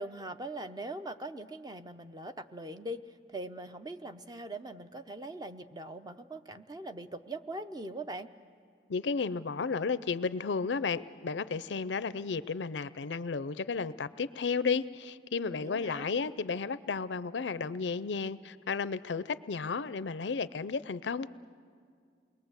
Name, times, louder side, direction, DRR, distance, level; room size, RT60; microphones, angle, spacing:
voice 1, 0.0-3.0 3.3-8.3 15.5-16.1, right 1 dB, 25° right, 10 dB, 0.6 m, -41 dB
voice 2, 8.9-21.3, left 5 dB, 85° left, 16 dB, 0.5 m, -33 dB
28.5 x 21.5 x 8.1 m, 2.2 s
head